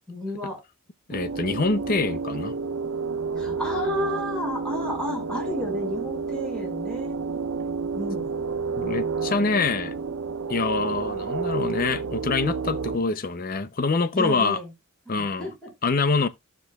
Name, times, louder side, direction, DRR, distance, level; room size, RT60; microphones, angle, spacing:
voice 1, 0.1-0.6 3.3-7.2 7.9-8.3 14.1-14.7 15.1-15.7, left 1 dB, 5° left, 5.1 m, -32 dB
voice 2, 1.1-2.5 8.8-9.9 10.5-14.6 15.1-15.5 15.8-16.3, left 4 dB, 40° left, 0.6 m, -25 dB
sound 1, 1.1-13.0, right 5 dB, 80° right, 0.7 m, -30 dB
15.0 x 6.1 x 2.3 m
head